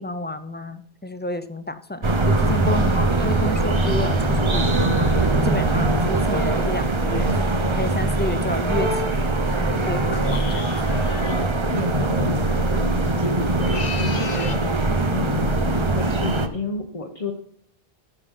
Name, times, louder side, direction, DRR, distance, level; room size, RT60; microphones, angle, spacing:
voice 1, 0.0-7.3 7.7-10.6, left 1 dB, 15° left, 12 dB, 0.5 m, -31 dB
sound 1, 2.0-16.5, right 2 dB, 30° right, 0.9 m, -21 dB
voice 2, 2.5-3.0 11.7-14.6 15.1-17.3, left 2 dB, 35° left, 2 dB, 1.2 m, -32 dB
sound 2, 10.2-11.4 13.5-14.7, left 6 dB, 65° left, 1.1 m, -35 dB
14.0 x 5.3 x 5.5 m, 0.66 s
omnidirectional pair, 1.0 m